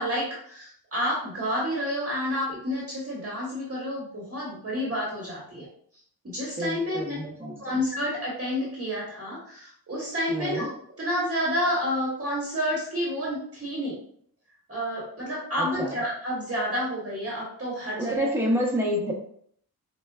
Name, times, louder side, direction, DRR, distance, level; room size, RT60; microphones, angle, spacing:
voice 1, 0.0-5.7 6.2-7.2 7.6-10.7 11.0-13.9 14.7-18.2, equal, 35° right, -5 dB, 1.1 m, -29 dB
voice 2, 6.6-7.5 10.3-10.7 15.6-15.9 18.0-19.1, equal, 5° right, -2 dB, 0.8 m, -28 dB
4.5 x 2.1 x 2.2 m, 0.62 s
cardioid pair, 55°, 37 cm